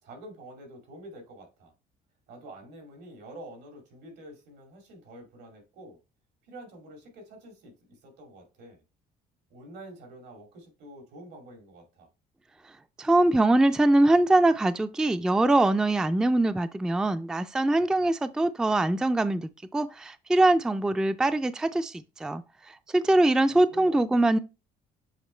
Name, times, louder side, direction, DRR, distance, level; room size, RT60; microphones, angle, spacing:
voice 1, 0.0-1.7 2.3-6.0 6.4-8.8 9.5-12.1 23.5-24.3, right 1 dB, 80° right, 2.3 m, -47 dB
voice 2, 13.0-22.4 22.9-24.4, right 2 dB, 5° right, 0.3 m, -23 dB
7.3 x 3.0 x 4.3 m
cardioid pair, 110°, 17 cm